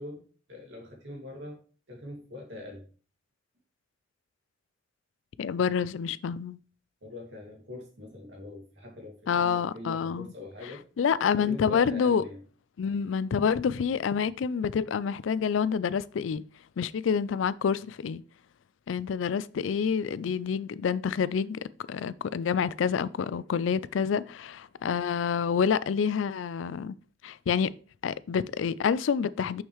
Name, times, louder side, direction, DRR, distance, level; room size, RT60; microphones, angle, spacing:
voice 1, 0.0-1.6 1.9-2.9 7.0-10.8 11.4-12.4, left 2 dB, 70° right, 2.2 m, -43 dB
voice 2, 5.4-6.6 9.3-10.3 11.0-12.2 12.8-16.4 16.8-18.2 18.9-21.6 21.9-27.0 27.2-27.7 28.0-29.6, left 6 dB, 85° left, 0.4 m, -28 dB
6.5 x 6.1 x 3.1 m
head